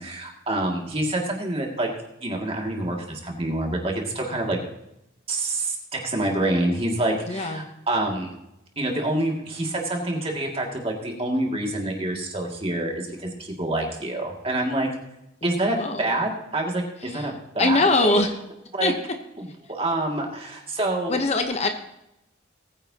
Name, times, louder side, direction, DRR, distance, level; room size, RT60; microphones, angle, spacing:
voice 1, 0.0-1.9 2.2-4.6 5.3-8.3 8.8-14.9 15.4-18.3 18.7-18.9 19.4-21.2, right 1 dB, 30° right, 0 dB, 2.3 m, -27 dB
voice 2, 7.3-7.7 15.7-16.2 17.1-17.3 17.6-18.3 18.8-18.9 21.1-21.7, left 2 dB, 35° left, 6 dB, 0.9 m, -22 dB
20.0 x 9.8 x 2.9 m, 0.84 s
head